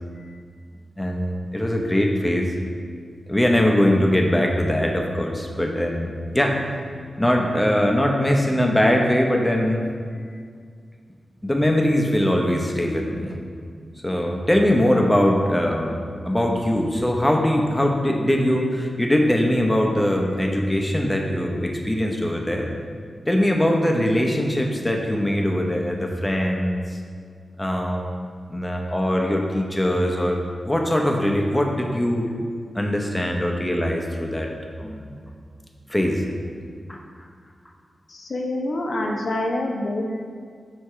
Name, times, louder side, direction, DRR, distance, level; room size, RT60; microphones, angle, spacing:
voice 1, 1.0-2.5 3.3-6.8 7.2-9.9 11.4-13.4 14.0-22.7 23.3-27.0 27.6-32.3 32.7-34.5 34.8-35.1 35.9-36.2 36.9-37.0, left 1 dB, 10° left, 1 dB, 0.7 m, -21 dB
voice 2, 38.1-40.2, left 1 dB, 60° left, 0 dB, 0.8 m, -26 dB
4.8 x 3.6 x 5.6 m, 2.1 s
wide cardioid pair, 90°, 0 cm